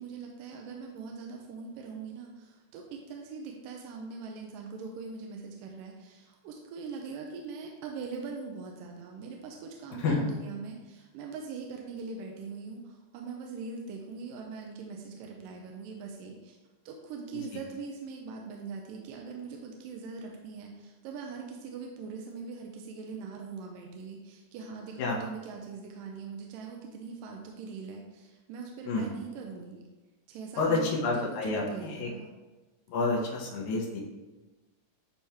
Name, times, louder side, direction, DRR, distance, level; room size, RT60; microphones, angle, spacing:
voice 1, 0.0-16.6 16.9-29.8 30.3-31.2 31.5-32.3, right 4 dB, 85° right, 1 dB, 2.2 m, -42 dB
voice 2, 30.6-32.1 32.9-34.0, left 3 dB, 70° left, -3 dB, 2.1 m, -29 dB
9.9 x 3.4 x 2.9 m, 1.2 s
omnidirectional pair, 3.9 m